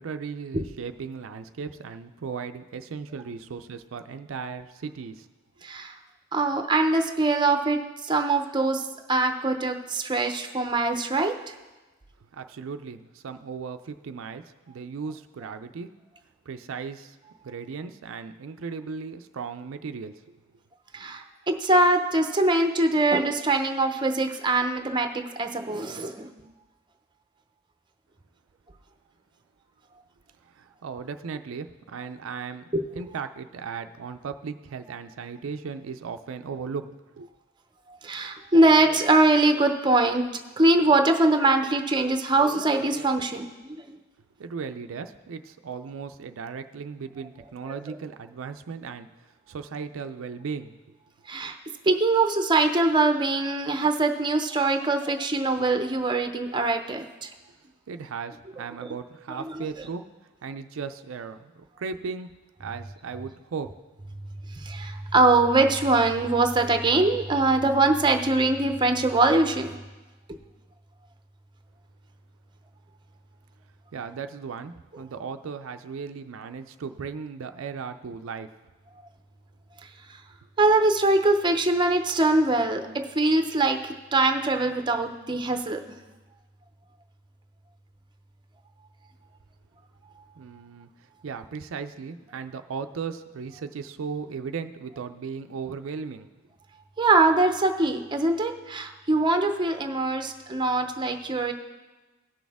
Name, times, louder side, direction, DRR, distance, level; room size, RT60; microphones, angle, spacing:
voice 1, 0.0-5.3 12.3-15.9 16.5-17.2 17.4-20.4 30.5-32.6 32.9-37.3 44.4-50.8 57.9-60.0 60.4-62.3 62.6-63.7 73.9-78.5 90.4-90.9 91.2-96.3, right 5 dB, 75° right, 8 dB, 0.4 m, -36 dB
voice 2, 5.6-5.9 6.3-11.4 20.9-26.3 32.7-32.8 37.9-40.2 40.6-43.5 47.7-48.0 51.3-51.6 51.8-57.3 59.4-59.7 64.6-69.8 70.3-70.4 80.6-82.9 83.1-85.8 97.0-101.5, right 2 dB, 25° right, 6 dB, 0.6 m, -23 dB
17.0 x 6.3 x 3.5 m, 1.2 s
head